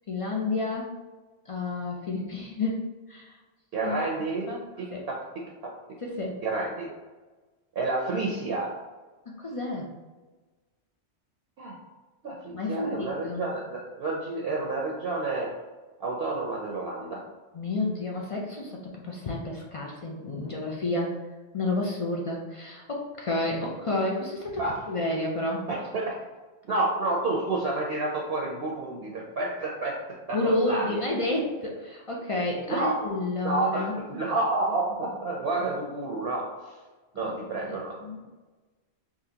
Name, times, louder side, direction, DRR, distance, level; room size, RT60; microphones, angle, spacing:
voice 1, 0.1-0.9 1.5-3.4 3.8-4.0 4.5-4.6 4.9-5.1 6.0-6.4 9.3-9.9 12.5-13.4 17.5-21.1 21.5-25.6 30.3-33.9 37.2-37.7 38.0-38.2, left 2 dB, 50° left, -1 dB, 0.4 m, -30 dB
voice 2, 3.7-4.5 4.8-5.7 6.4-6.9 7.8-8.8 11.6-11.8 12.2-15.6 16.0-17.2 24.6-24.8 25.7-26.2 26.6-30.0 30.3-31.0 32.7-33.1 33.4-36.6 37.1-38.0, right 2 dB, 65° right, -1 dB, 0.8 m, -30 dB
3.8 x 2.9 x 2.7 m, 1.3 s
omnidirectional pair, 1.1 m